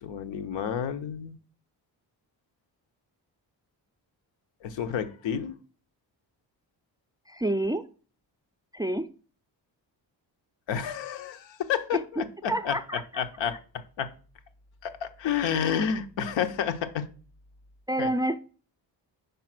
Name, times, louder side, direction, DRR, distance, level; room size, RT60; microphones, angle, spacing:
voice 1, 0.0-1.4 4.6-5.5 10.7-14.1 14.8-17.1 18.0-18.1, left 8 dB, 85° left, 0.8 m, -30 dB
voice 2, 7.3-7.9 8.7-9.1 12.5-13.2 17.9-18.4, right 1 dB, 10° right, 0.3 m, -28 dB
5.4 x 4.2 x 5.9 m
cardioid pair, 95°, 43 cm